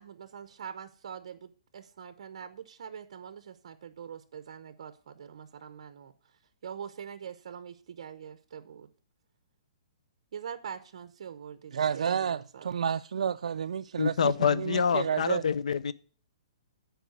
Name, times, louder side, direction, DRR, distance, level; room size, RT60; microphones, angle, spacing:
voice 1, 0.0-6.1 6.6-8.9 10.3-12.8, right 7 dB, 55° right, 0.8 m, -44 dB
voice 2, 11.7-15.4, right 7 dB, 90° right, 0.3 m, -30 dB
voice 3, 14.0-15.9, left 6 dB, 85° left, 0.6 m, -26 dB
9.1 x 4.8 x 7.7 m
hypercardioid pair, 170°, 4 cm